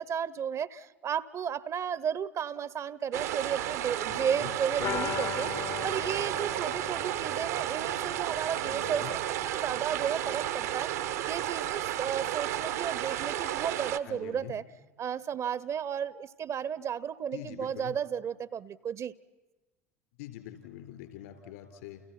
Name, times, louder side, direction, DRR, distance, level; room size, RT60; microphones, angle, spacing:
voice 1, 0.0-14.6 15.0-19.1, right 8 dB, 40° right, 0.8 m, -34 dB
sound 1, 3.1-14.0, right 12 dB, 70° right, 1.0 m, -32 dB
voice 2, 4.1-4.5 8.6-9.1 14.0-14.6 17.3-17.9 20.2-22.0, left 12 dB, 70° left, 4.1 m, -44 dB
sound 2, 4.8-10.4 10.6-10.7 11.0-11.1, left 9 dB, 45° left, 1.0 m, -40 dB
29.5 x 29.5 x 5.9 m
figure-of-eight pair, 70°, 8 cm